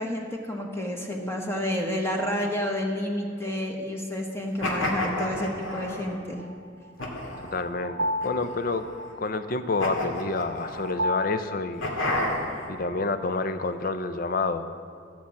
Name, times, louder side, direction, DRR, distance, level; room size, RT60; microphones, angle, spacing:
voice 1, 0.0-6.4, left 1 dB, 15° left, 1 dB, 1.2 m, -30 dB
sound 1, 4.6-6.1 7.0-7.6 8.2-8.9 9.8-10.9 11.8-12.7, left 1 dB, 85° left, 2.2 m, -30 dB
sound 2, 6.4-13.3, left 1 dB, 60° right, 0.8 m, -34 dB
voice 2, 7.4-8.9 9.2-12.0 12.7-14.7, left 3 dB, 45° left, 11 dB, 0.6 m, -28 dB
14.5 x 6.1 x 8.5 m, 2.3 s
head